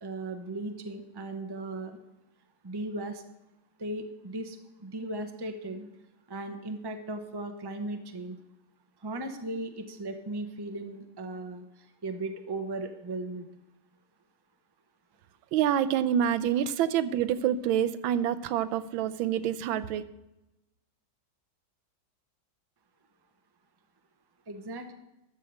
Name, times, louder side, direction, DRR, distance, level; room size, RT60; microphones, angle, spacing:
voice 1, 0.0-2.0 2.6-3.2 3.8-5.8 6.3-8.4 9.0-11.7 12.0-13.5 24.5-24.9, right 2 dB, 20° right, 6 dB, 0.6 m, -37 dB
voice 2, 15.5-20.0, right 10 dB, 90° right, 14 dB, 1.4 m, -27 dB
13.5 x 5.6 x 7.8 m, 0.94 s
omnidirectional pair, 2.2 m